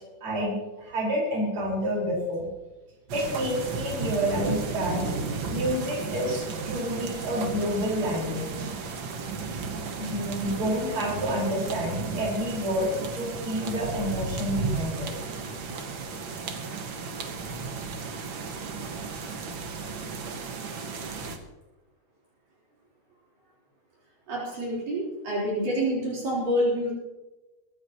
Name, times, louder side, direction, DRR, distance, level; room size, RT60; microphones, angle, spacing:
voice 1, 0.2-2.5 3.1-5.2 5.5-8.7 10.0-12.9 13.2-15.3, equal, 35° right, -4 dB, 5.6 m, -29 dB
sound 1, 3.1-21.4, right 4 dB, 90° right, 1.0 m, -34 dB
voice 2, 24.3-26.9, equal, 65° right, -5 dB, 5.6 m, -27 dB
23.0 x 12.0 x 3.0 m, 1.1 s
omnidirectional pair, 4.3 m